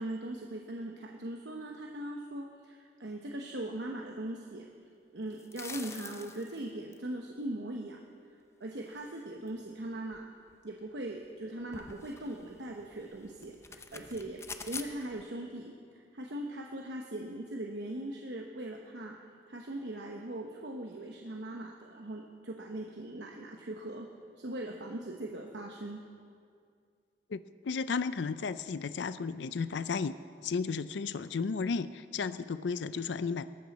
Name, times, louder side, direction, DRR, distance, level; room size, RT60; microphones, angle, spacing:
voice 1, 0.0-4.7 5.1-8.0 8.6-10.3 10.6-19.2 19.5-24.1 24.4-26.0, right 1 dB, 75° right, 1 dB, 1.0 m, -40 dB
sound 1, 5.3-6.6 6.9-7.0 8.8-9.2 9.5-9.6 10.1-10.2 10.5-10.6 11.2-11.3 11.6-15.2, left 4 dB, 15° left, 0.5 m, -46 dB
voice 2, 27.6-30.1 30.4-33.4, left 5 dB, 80° left, 14 dB, 0.4 m, -33 dB
19.0 x 14.0 x 4.1 m, 2.2 s
head